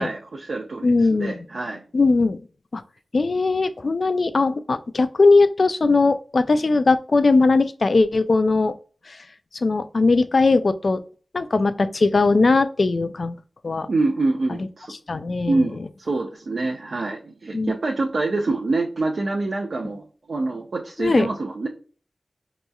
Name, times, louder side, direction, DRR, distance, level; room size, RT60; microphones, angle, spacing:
voice 1, 0.0-1.8 13.9-14.9 15.5-21.7, right 3 dB, 70° right, -1 dB, 0.6 m, -26 dB
voice 2, 0.8-1.4 1.9-2.4 2.7-2.8 3.1-8.7 9.1-9.2 9.6-11.0 11.3-13.3 13.6-13.9 15.1-15.6 17.5-17.7 21.0-21.3, left 3 dB, 60° left, 12 dB, 0.4 m, -19 dB
5.2 x 3.0 x 2.3 m, 0.39 s
wide cardioid pair, 65°, 0 cm